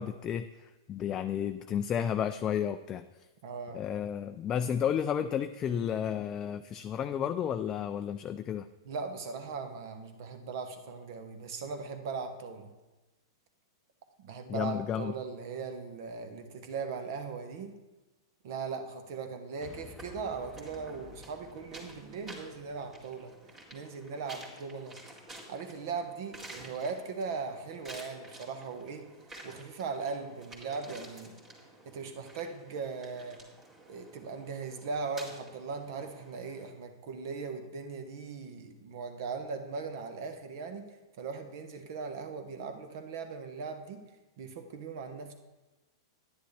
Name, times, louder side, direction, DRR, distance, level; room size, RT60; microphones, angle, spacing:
voice 1, 0.0-3.0 3.7-8.7 14.5-15.1, left 9 dB, 25° left, 9 dB, 0.3 m, -32 dB
voice 2, 3.4-3.9 8.8-12.7 14.2-17.7 18.4-23.3 23.7-25.0 25.5-29.1 29.4-31.3 31.8-33.4 33.9-40.8 41.2-44.0 44.4-45.3, right 5 dB, 55° right, 7 dB, 1.2 m, -39 dB
sound 1, 19.6-24.0, left 1 dB, 5° left, 0.8 m, -54 dB
sound 2, 20.0-36.7, right 1 dB, 20° right, 2.2 m, -51 dB
10.0 x 10.0 x 3.3 m, 1.1 s
hypercardioid pair, 105°, 2 cm